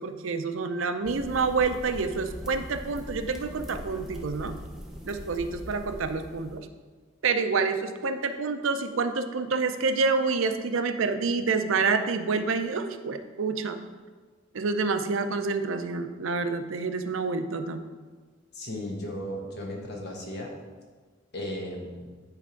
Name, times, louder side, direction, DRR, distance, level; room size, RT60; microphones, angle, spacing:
voice 1, 0.0-4.6 5.0-6.7 7.2-13.8 14.5-17.9, right 4 dB, 80° right, 8 dB, 0.5 m, -28 dB
sound 1, 1.0-6.6, equal, 5° right, 0.6 m, -41 dB
voice 2, 18.5-20.5 21.3-22.1, left 1 dB, 55° left, 0 dB, 1.4 m, -35 dB
10.0 x 3.5 x 4.5 m, 1.4 s
head